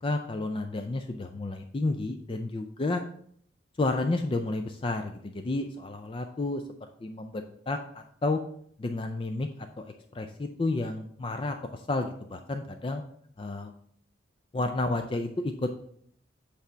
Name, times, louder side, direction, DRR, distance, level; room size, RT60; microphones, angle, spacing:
voice 1, 0.0-3.0 3.8-6.6 7.0-8.4 8.8-13.0 13.4-13.7 14.5-15.7, left 2 dB, 25° left, 6 dB, 0.3 m, -31 dB
8.2 x 3.4 x 5.0 m, 0.63 s
head